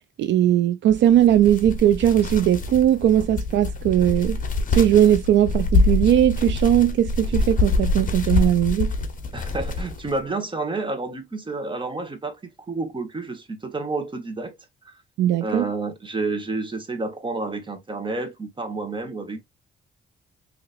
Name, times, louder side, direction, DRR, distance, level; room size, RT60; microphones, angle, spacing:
voice 1, 0.2-4.4 4.7-8.9 15.2-15.7, right 11 dB, 65° right, 0.4 m, -19 dB
sound 1, 0.9-10.2, left 3 dB, 45° left, 0.9 m, -25 dB
voice 2, 9.3-14.6 14.8-15.0 15.4-19.4, right 3 dB, 25° right, 1.3 m, -30 dB
4.1 x 2.9 x 2.5 m
cardioid pair, 90°, 20 cm